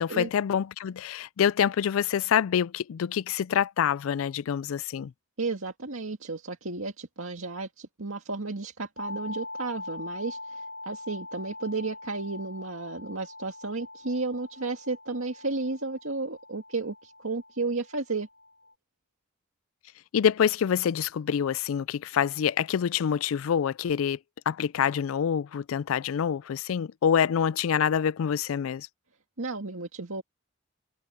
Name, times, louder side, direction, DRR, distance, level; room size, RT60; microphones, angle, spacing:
voice 1, 0.0-5.1 20.1-24.2 24.5-28.9, left 8 dB, 75° left, 0.3 m, -26 dB
voice 2, 5.4-18.3 29.4-30.2, right 3 dB, 75° right, 2.1 m, -33 dB
sound 1, 9.0-18.7, left 2 dB, 60° left, 2.9 m, -43 dB
head